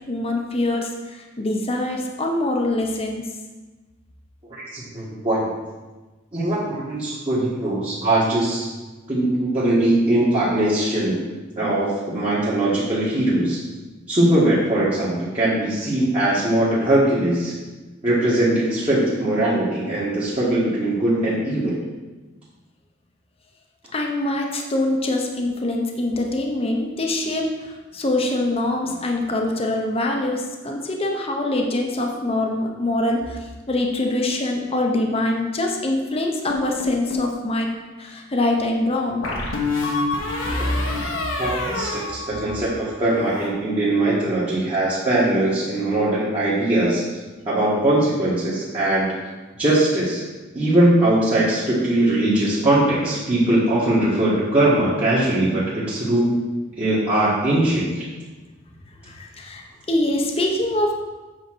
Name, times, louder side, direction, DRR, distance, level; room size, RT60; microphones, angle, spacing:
voice 1, 0.1-3.2 23.9-33.4 33.7-37.7 38.0-39.4 59.1-60.9, left 1 dB, 30° left, 1 dB, 0.8 m, -24 dB
voice 2, 4.5-5.5 6.3-8.7 9.1-11.2 11.6-13.6 14.1-17.5 18.0-21.8 41.1-47.1 47.4-49.2 49.5-50.2 50.5-56.3 56.8-58.0, right 1 dB, 30° right, -9 dB, 1.5 m, -21 dB
sound 1, 36.5-37.3 39.2-42.7 43.0-43.5, left 2 dB, 80° left, 1.2 m, -26 dB
8.1 x 3.7 x 6.1 m, 1.2 s
head